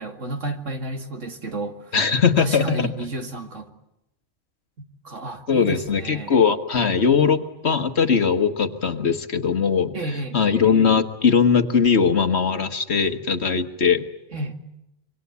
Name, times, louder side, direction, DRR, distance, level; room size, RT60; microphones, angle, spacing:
voice 1, 0.0-2.0 2.4-3.7 4.8-6.3 9.9-10.4 14.3-14.6, right 1 dB, 65° right, 5 dB, 2.6 m, -31 dB
voice 2, 1.9-2.9 5.5-9.9 10.3-14.1, left 6 dB, 55° left, 8 dB, 1.7 m, -20 dB
26.5 x 24.0 x 8.3 m, 0.85 s
omnidirectional pair, 1.4 m